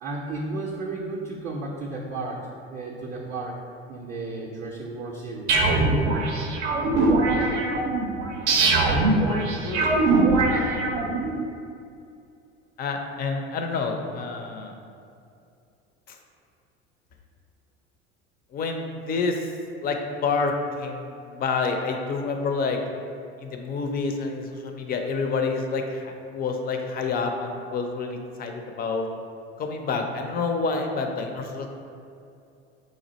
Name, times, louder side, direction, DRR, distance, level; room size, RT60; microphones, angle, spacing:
voice 1, 0.0-3.6 3.9-5.7, right 3 dB, 30° right, -4 dB, 0.5 m, -33 dB
sound 1, 5.5-11.3, right 2 dB, 75° right, 0.6 m, -22 dB
voice 2, 8.6-10.0 10.3-10.9 12.8-14.7 16.1-16.2 18.5-19.5 19.8-22.8 23.4-29.1 29.6-31.7, left 4 dB, 30° left, 4 dB, 0.4 m, -28 dB
3.0 x 2.4 x 4.0 m, 2.5 s
hypercardioid pair, 70°, 33 cm